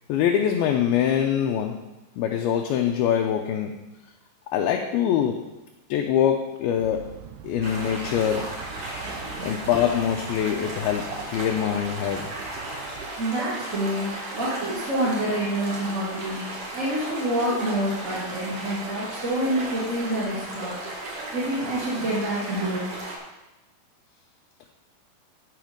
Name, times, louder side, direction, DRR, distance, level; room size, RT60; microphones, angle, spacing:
voice 1, 0.1-1.9 2.2-3.8 4.5-5.4 5.9-7.1 7.4-8.5 9.0-12.3, left 9 dB, 80° left, 3 dB, 2.3 m, -24 dB
sound 1, 6.8-13.1, right 7 dB, 90° right, 1.9 m, -43 dB
sound 2, 7.6-23.2, right 2 dB, 50° right, 1.9 m, -35 dB
voice 2, 13.2-20.8 21.3-22.9, right 1 dB, 30° right, -9 dB, 1.6 m, -27 dB
12.5 x 5.1 x 5.1 m, 1.0 s
omnidirectional pair, 4.8 m